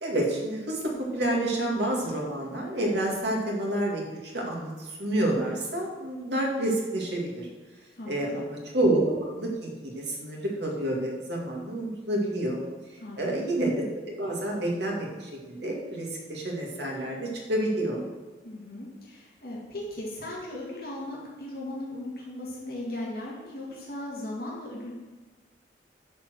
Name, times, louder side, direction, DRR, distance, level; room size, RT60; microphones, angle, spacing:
voice 1, 0.0-7.5 8.1-12.6 13.2-18.0, right 1 dB, 70° right, -1 dB, 2.1 m, -29 dB
voice 2, 8.0-8.4 13.0-13.5 18.4-24.9, left 1 dB, 55° left, -4 dB, 2.0 m, -37 dB
9.5 x 4.5 x 6.3 m, 1.3 s
head